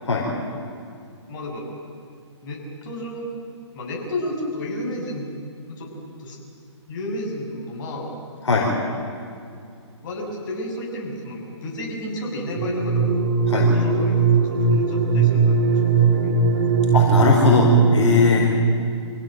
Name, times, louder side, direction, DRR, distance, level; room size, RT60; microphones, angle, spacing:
voice 1, 1.3-1.7 2.4-3.3 3.7-5.3 5.7-5.9 6.2-6.4 6.9-8.1 10.0-13.1 13.5-16.4, left 1 dB, 45° left, -1 dB, 6.9 m, -32 dB
sound 1, 12.6-18.5, right 4 dB, 50° right, 3.8 m, -19 dB
voice 2, 16.9-18.5, left 3 dB, 70° left, -1 dB, 4.5 m, -18 dB
26.0 x 17.0 x 9.2 m, 2.4 s
hypercardioid pair, 135°, 15 cm